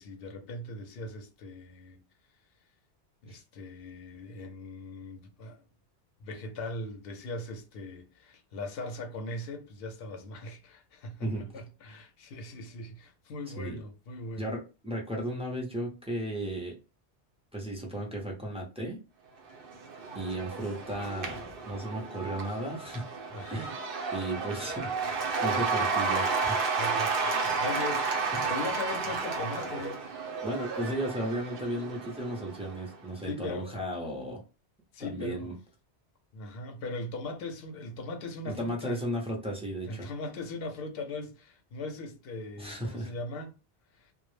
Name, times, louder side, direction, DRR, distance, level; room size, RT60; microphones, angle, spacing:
voice 1, 0.0-2.0 3.2-5.6 6.2-14.5 23.3-23.7 26.7-28.1 28.5-30.0 33.2-33.8 34.9-35.6 36.3-39.0 39.8-43.5 43.9-44.1, left 2 dB, 65° left, 0.7 m, -39 dB
voice 2, 14.4-16.8 17.5-19.0 20.1-23.1 23.5-23.8 24.1-26.6 28.3-28.5 30.4-34.4 35.0-35.5 38.4-40.1 42.6-43.1, right 1 dB, 10° right, 0.4 m, -35 dB
Cheering / Applause / Crowd, 19.5-32.9, right 4 dB, 60° right, 0.7 m, -32 dB
2.2 x 2.0 x 3.1 m
omnidirectional pair, 1.1 m